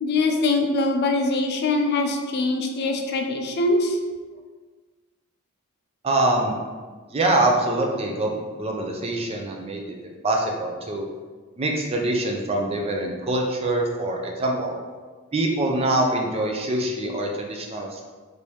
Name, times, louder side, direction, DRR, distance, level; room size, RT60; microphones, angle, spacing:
voice 1, 0.0-4.0, left 2 dB, 50° left, 3 dB, 0.4 m, -23 dB
voice 2, 6.0-6.5 7.1-9.8 10.2-11.1 11.6-14.8 15.3-18.0, right 2 dB, 25° right, 1 dB, 0.4 m, -24 dB
3.3 x 2.6 x 3.0 m, 1.4 s
head